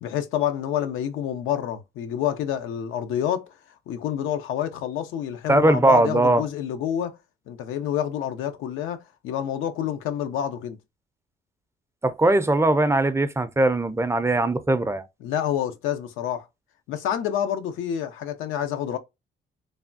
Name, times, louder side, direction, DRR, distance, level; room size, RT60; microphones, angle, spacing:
voice 1, 0.0-3.5 3.9-7.2 7.5-10.8 15.2-16.5 16.9-19.0, left 10 dB, 90° left, 0.5 m, -28 dB
voice 2, 5.5-6.5 12.0-15.1, right 2 dB, 15° right, 0.4 m, -20 dB
3.3 x 2.2 x 2.4 m
cardioid pair, 90°, 20 cm